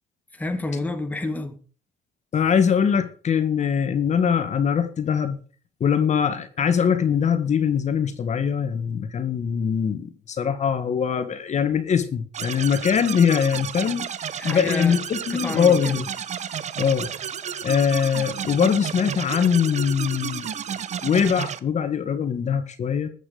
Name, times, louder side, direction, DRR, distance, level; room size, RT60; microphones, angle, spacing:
voice 1, 0.3-1.6 14.4-15.0 15.3-16.1, left 2 dB, 10° left, 1.7 m, -29 dB
voice 2, 2.3-5.4 5.8-14.1 14.4-16.0 16.8-17.1 17.6-20.5 21.0-23.1, left 7 dB, 45° left, 1.8 m, -22 dB
sound 1, 12.3-21.6, right 8 dB, 40° right, 0.9 m, -32 dB
14.0 x 8.6 x 5.1 m
cardioid pair, 110°, 17 cm